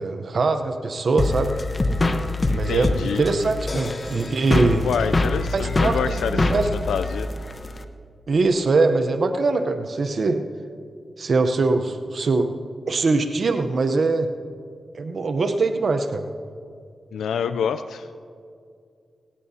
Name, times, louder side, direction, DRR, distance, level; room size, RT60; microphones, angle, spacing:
voice 1, 0.0-1.5 2.5-4.9 5.5-6.7 8.3-10.4 11.2-12.5 12.9-14.3 14.9-16.2, right 3 dB, 65° right, 7 dB, 0.8 m, -22 dB
sound 1, 1.2-7.8, left 2 dB, 40° left, 0.9 m, -24 dB
voice 2, 2.5-3.2 4.8-7.3 17.1-18.1, left 7 dB, 90° left, 11 dB, 0.4 m, -27 dB
18.5 x 18.0 x 2.8 m, 2.3 s
cardioid pair, 50°, 0 cm